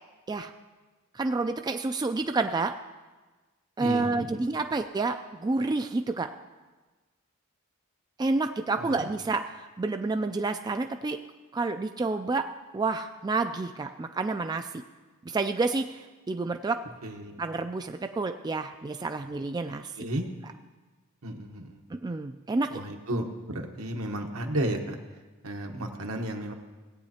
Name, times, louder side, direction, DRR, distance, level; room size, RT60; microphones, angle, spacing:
voice 1, 1.1-2.7 3.8-6.3 8.2-11.2 11.5-12.4 12.7-14.8 15.3-16.8 17.4-20.1 22.0-22.7, right 3 dB, 20° right, 7 dB, 0.3 m, -29 dB
voice 2, 3.8-4.4 8.8-9.1 17.0-17.3 20.0-20.3 21.2-21.8 22.7-25.0 25.4-26.5, right 1 dB, 75° right, 3 dB, 1.1 m, -33 dB
18.0 x 8.7 x 2.9 m, 1.2 s
head